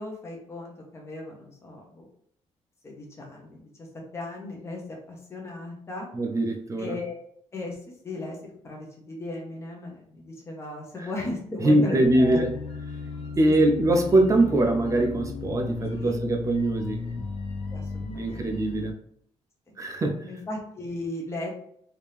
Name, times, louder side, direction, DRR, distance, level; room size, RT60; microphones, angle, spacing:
voice 1, 0.0-2.0 2.8-3.9 4.1-4.8 5.1-6.1 6.8-7.1 7.5-7.8 8.0-8.4 8.6-12.4 15.9-16.2 17.7-18.5 19.7-19.8 20.3-21.5, left 2 dB, 25° left, 0.9 m, -36 dB
voice 2, 6.1-6.9 11.0-11.1 11.6-12.5 13.4-17.1 18.1-19.0 19.8-20.3, right 1 dB, 30° right, 0.5 m, -23 dB
sound 1, 12.0-18.9, left 4 dB, 55° left, 0.6 m, -35 dB
3.5 x 2.8 x 3.3 m
wide cardioid pair, 170°, 12 cm